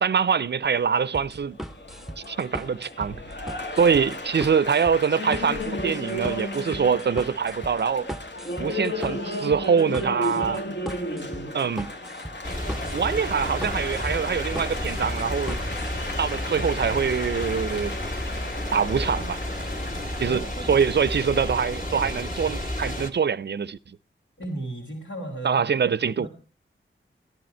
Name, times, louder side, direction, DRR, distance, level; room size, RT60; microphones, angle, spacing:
voice 1, 0.0-1.6 2.3-3.2 3.7-8.1 8.6-10.6 11.5-11.9 12.9-15.6 16.2-17.9 18.7-19.4 20.2-24.0 25.4-26.3, right 6 dB, 55° right, 0.5 m, -24 dB
Applause, 0.6-20.4, left 1 dB, 60° left, 1.3 m, -34 dB
sound 1, 1.1-15.9, equal, ahead, 0.6 m, -38 dB
sound 2, 12.4-23.1, left 1 dB, 40° left, 2.2 m, -31 dB
voice 2, 20.2-20.8 24.4-25.7 26.2-26.3, right 1 dB, 80° left, 3.1 m, -35 dB
14.0 x 10.5 x 4.4 m
cardioid pair, 45°, 21 cm